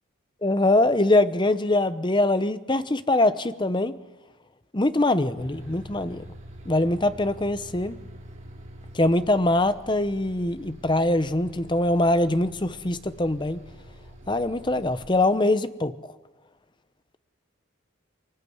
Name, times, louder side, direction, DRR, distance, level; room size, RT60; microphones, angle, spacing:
voice 1, 0.4-4.0 4.7-6.2 6.7-8.0 8.9-13.6 14.3-15.9, left 2 dB, 20° left, 12 dB, 0.9 m, -23 dB
Bus, 5.4-15.1, equal, 35° right, 3.3 m, -46 dB
24.0 x 19.0 x 9.5 m, 1.2 s
head